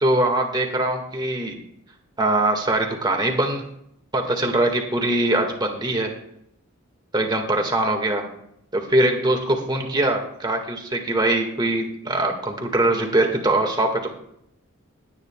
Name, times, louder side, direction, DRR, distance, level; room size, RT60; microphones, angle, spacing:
voice 1, 0.0-1.6 2.2-3.6 4.1-6.1 7.1-8.3 8.7-14.1, right 1 dB, 20° right, 2 dB, 1.8 m, -22 dB
21.5 x 9.3 x 2.3 m, 0.74 s
head